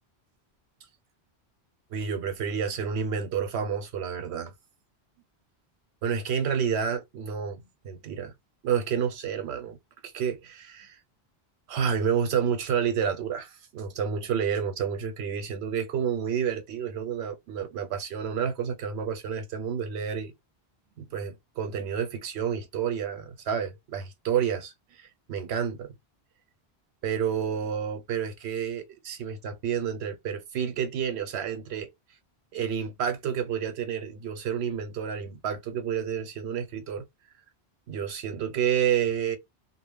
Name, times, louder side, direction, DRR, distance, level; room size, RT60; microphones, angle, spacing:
voice 1, 1.9-4.5 6.0-8.3 8.6-9.8 10.0-11.0 11.7-20.3 21.0-25.9 27.0-31.9 32.5-37.0 37.9-39.4, right 7 dB, 85° right, 0.9 m, -30 dB
2.1 x 2.0 x 3.3 m
omnidirectional pair, 1.1 m